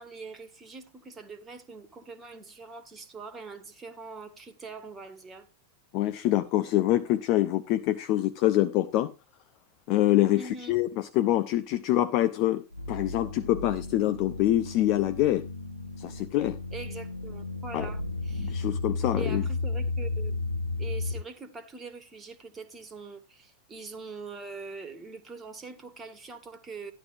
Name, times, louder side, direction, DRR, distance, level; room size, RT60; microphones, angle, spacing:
voice 1, 0.0-5.5 10.3-10.8 16.7-18.7 19.1-20.4 20.8-26.9, right 4 dB, 20° right, 1.6 m, -43 dB
voice 2, 5.9-9.1 9.9-10.4 10.7-10.9 11.2-15.5 16.0-16.6 17.7-17.9 18.4-19.4, left 14 dB, 40° left, 0.6 m, -25 dB
sound 1, 12.7-21.2, left 3 dB, 85° left, 0.9 m, -33 dB
13.0 x 11.0 x 2.6 m
figure-of-eight pair, 90°, 0 cm